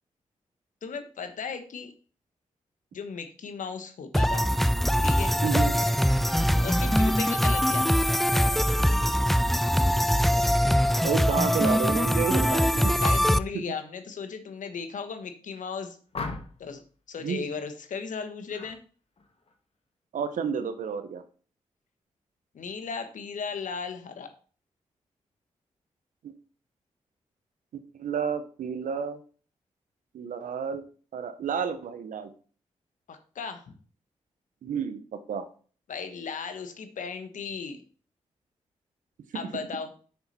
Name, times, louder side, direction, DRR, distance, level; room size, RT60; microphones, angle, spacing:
voice 1, 0.8-1.9 2.9-4.5 5.0-5.4 6.6-8.0 13.0-16.0 16.6-16.8 17.1-18.8 22.5-24.3 33.1-33.7 35.9-37.8 39.3-39.9, left 5 dB, 75° left, 8 dB, 1.3 m, -36 dB
sound 1, 4.1-13.4, equal, ahead, 0.5 m, -23 dB
voice 2, 5.4-5.9 11.0-12.9 13.5-13.6 17.2-17.5 20.1-21.2 26.2-26.3 27.9-29.2 30.1-30.8 31.1-32.3 34.6-35.5 39.3-39.5, right 7 dB, 80° right, 10 dB, 1.0 m, -30 dB
sound 2, 16.1-16.7 18.5-18.8 19.2-19.5, left 3 dB, 50° left, 1.6 m, -37 dB
6.8 x 6.6 x 4.3 m, 0.40 s
supercardioid pair, 40°, 13 cm